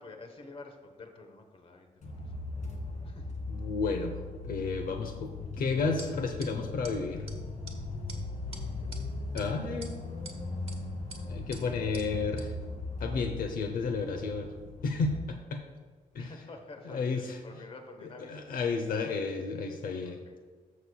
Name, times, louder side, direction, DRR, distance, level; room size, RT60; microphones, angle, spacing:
voice 1, 0.0-2.0 3.0-3.3 8.5-9.0 16.2-18.4 20.0-20.3, left 3 dB, 40° left, 5 dB, 1.1 m, -49 dB
sound 1, 2.0-15.2, left 2 dB, 60° left, 1.9 m, -39 dB
voice 2, 3.5-7.3 9.3-10.0 11.3-12.5 13.0-14.5 14.8-15.6 16.1-16.3 16.8-17.4 18.3-20.2, left 4 dB, 80° left, 5 dB, 0.8 m, -32 dB
sound 2, 6.0-6.1 6.4-6.5 6.8-6.9 7.3-7.4 7.7-7.8 8.1-8.2 8.5-9.0 9.4-9.5 9.8-10.4 10.7-10.8 11.1-11.2 11.5-11.6 11.9-12.1 12.4-12.5, right 3 dB, 40° right, 1.2 m, -45 dB
14.0 x 6.4 x 2.3 m, 1.5 s
wide cardioid pair, 140°, 14 cm